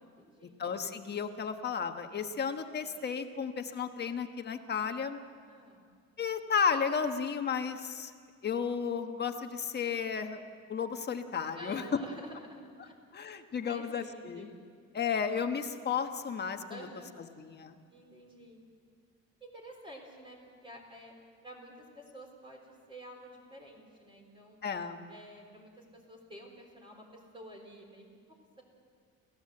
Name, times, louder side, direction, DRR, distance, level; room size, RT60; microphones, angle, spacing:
voice 1, 0.0-0.6 5.4-5.8 11.5-12.9 13.6-14.6 16.7-17.1 17.9-18.6 19.4-21.1 21.4-24.6 25.1-28.6, equal, 15° right, 1 dB, 4.0 m, -50 dB
voice 2, 0.6-5.2 6.2-8.1 8.4-10.4 10.7-12.0 13.1-14.5 14.9-16.9 17.4-17.8 24.6-25.0, left 6 dB, 35° left, 6 dB, 1.3 m, -33 dB
29.5 x 15.5 x 7.8 m, 2.1 s
cardioid pair, 140°, 29 cm